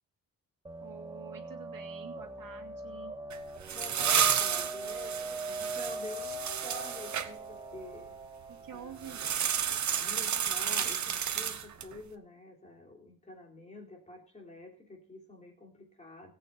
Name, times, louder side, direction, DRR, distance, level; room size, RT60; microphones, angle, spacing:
sound 1, 0.6-9.9, right 2 dB, 15° right, 1.7 m, -42 dB
voice 1, 0.8-3.1 8.6-9.3, right 7 dB, 70° right, 3 dB, 2.5 m, -47 dB
sound 2, 3.3-7.3 9.0-11.9, right 8 dB, 55° right, 1.1 m, -31 dB
voice 2, 3.7-8.2 8.7-9.3 9.9-16.3, left 2 dB, 20° left, 0 dB, 3.4 m, -48 dB
17.5 x 8.8 x 4.0 m, 0.40 s
wide cardioid pair, 150°, 34 cm